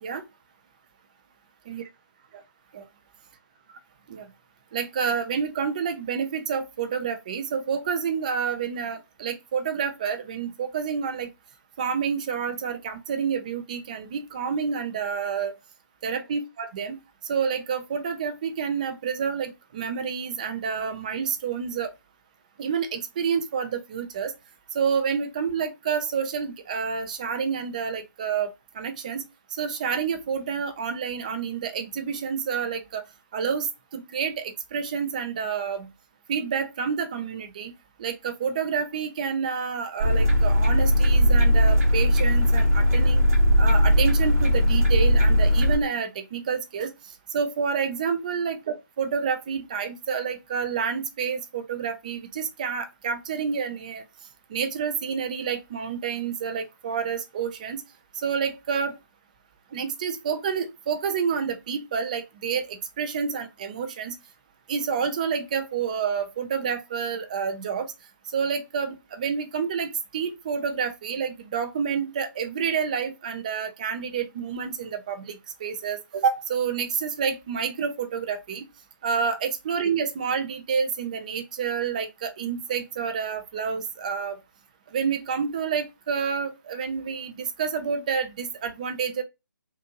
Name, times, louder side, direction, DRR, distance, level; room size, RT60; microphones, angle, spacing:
voice 1, 4.7-11.3 11.8-15.6 16.0-17.0 17.3-21.9 22.6-24.3 24.7-29.2 29.5-33.0 33.3-35.9 36.3-37.7 38.0-43.3 43.6-46.9 47.3-54.0 54.5-57.8 58.2-59.0 59.7-64.2 64.7-67.9 68.3-78.6 79.0-84.4 84.9-89.2, right 6 dB, 20° right, 0.4 m, -29 dB
sound 1, 40.0-45.8, equal, 40° right, 1.0 m, -19 dB
2.5 x 2.5 x 2.5 m
figure-of-eight pair, 150°, 11 cm